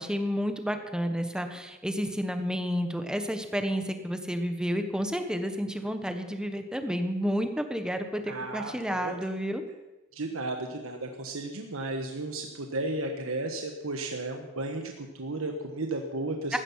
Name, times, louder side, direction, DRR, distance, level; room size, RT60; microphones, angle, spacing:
voice 1, 0.0-9.6 16.5-16.6, equal, 5° right, 7 dB, 1.3 m, -30 dB
voice 2, 8.3-9.1 10.1-16.6, right 2 dB, 80° right, 4 dB, 1.4 m, -34 dB
15.5 x 13.0 x 5.7 m, 1.1 s
head